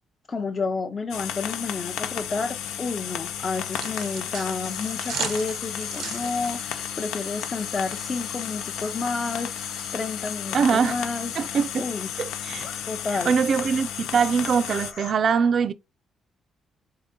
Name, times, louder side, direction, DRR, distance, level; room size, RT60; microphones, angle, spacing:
voice 1, 0.3-11.3 11.8-12.2 12.9-13.3, left 4 dB, 35° left, 0.5 m, -30 dB
sound 1, 1.1-14.9, left 10 dB, 90° left, 0.4 m, -33 dB
sound 2, 3.7-9.9, right 8 dB, 85° right, 0.7 m, -39 dB
sound 3, 4.6-15.1, left 6 dB, 75° left, 0.9 m, -42 dB
voice 2, 10.5-11.0 11.4-11.8 12.2-12.7 13.3-15.7, right 6 dB, 55° right, 0.4 m, -22 dB
3.8 x 3.6 x 3.7 m
cardioid pair, 90°, 0 cm